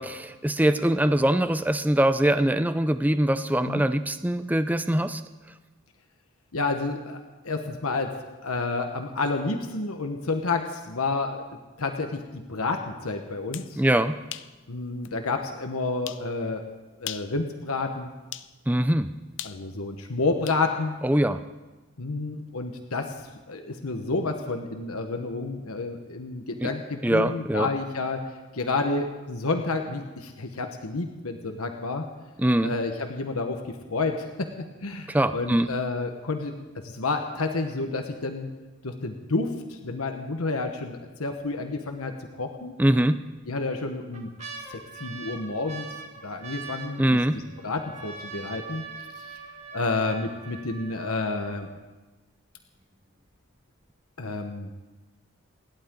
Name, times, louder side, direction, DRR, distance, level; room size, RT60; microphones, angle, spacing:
voice 1, 0.0-5.2 13.8-14.1 18.7-19.1 21.0-21.4 26.6-26.7 27.0-27.7 32.4-32.7 35.1-35.7 42.8-43.2 47.0-47.4, right 1 dB, 10° right, 11 dB, 0.5 m, -23 dB
voice 2, 6.5-8.1 8.4-13.8 14.7-16.6 17.0-18.1 19.4-21.0 22.0-23.1 23.5-28.2 28.5-32.1 32.6-38.5 38.8-42.8 43.5-44.3 44.7-45.9 46.2-48.9 49.2-49.4 49.7-51.7 54.2-54.7, left 3 dB, 90° left, 4 dB, 1.3 m, -30 dB
sound 1, 13.3-13.7 14.3-14.5 15.0-15.1 16.1-16.3 17.0-17.4 18.3-18.5 19.4-20.6, left 12 dB, 55° left, 0.6 m, -38 dB
sound 2, 43.4-43.5 43.9-51.8 52.6-52.7 52.8-53.3 53.8-53.9, right 5 dB, 30° right, 2.0 m, -43 dB
29.5 x 11.5 x 3.9 m, 1.2 s
head